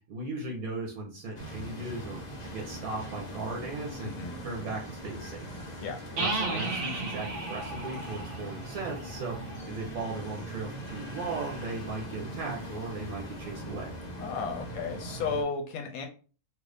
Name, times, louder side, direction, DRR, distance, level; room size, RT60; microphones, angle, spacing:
voice 1, 0.1-2.2 2.5-4.1 4.4-5.4 6.2-13.9, right 3 dB, 75° right, -1 dB, 1.3 m, -37 dB
sound 1, 1.3-15.4, right 1 dB, 45° left, 0.6 m, -41 dB
sound 2, 6.2-9.8, right 2 dB, 60° right, 1.1 m, -35 dB
voice 2, 14.2-16.1, left 5 dB, 75° left, 3 dB, 1.0 m, -33 dB
2.8 x 2.5 x 3.4 m, 0.37 s
omnidirectional pair, 1.5 m